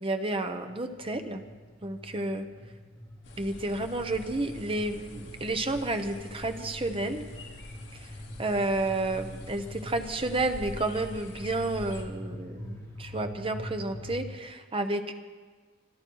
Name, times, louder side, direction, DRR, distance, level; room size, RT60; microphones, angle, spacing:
voice 1, 0.0-1.4 1.8-2.5 3.4-7.2 8.4-15.1, right 2 dB, 30° right, 7 dB, 0.9 m, -31 dB
sound 1, 0.7-14.1, left 1 dB, 15° left, 5.2 m, -44 dB
sound 2, 3.2-12.0, left 1 dB, 65° left, 2.5 m, -46 dB
25.0 x 10.5 x 4.7 m, 1.5 s
head